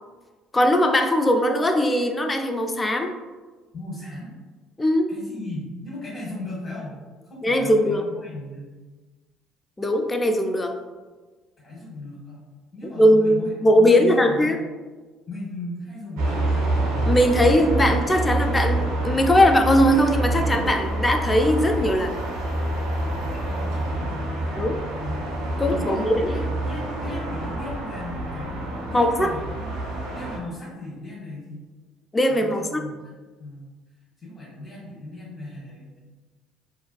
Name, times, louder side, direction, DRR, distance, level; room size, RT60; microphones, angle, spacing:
voice 1, 0.5-3.1 4.8-5.1 7.4-8.0 9.8-10.8 12.8-14.6 17.0-22.2 24.6-24.8 25.6-26.3 28.9-29.3 32.1-32.8, equal, 20° left, 5 dB, 0.3 m, -20 dB
voice 2, 3.7-4.4 5.1-7.0 7.3-8.7 11.6-12.5 12.7-14.5 15.3-16.4 23.0-24.5 25.0-25.2 25.6-29.9 30.1-31.7 32.3-33.1 33.4-33.6 34.2-36.0, left 1 dB, 45° left, -7 dB, 0.9 m, -37 dB
sound 1, 16.2-30.4, right 1 dB, 80° right, 0.5 m, -27 dB
2.5 x 2.2 x 2.3 m, 1.4 s
hypercardioid pair, 60°, 0 cm